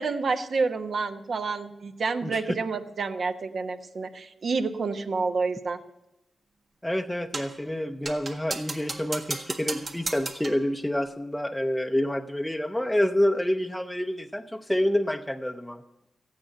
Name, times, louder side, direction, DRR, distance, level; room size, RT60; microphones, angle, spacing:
voice 1, 0.0-5.8, right 4 dB, 65° right, 6 dB, 1.1 m, -29 dB
voice 2, 6.8-15.8, left 1 dB, 5° left, 4 dB, 0.6 m, -28 dB
sound 1, 7.3-7.6 8.1-10.6, right 3 dB, 45° right, 1.6 m, -35 dB
14.5 x 8.8 x 7.8 m, 0.90 s
cardioid pair, 70°, 0 cm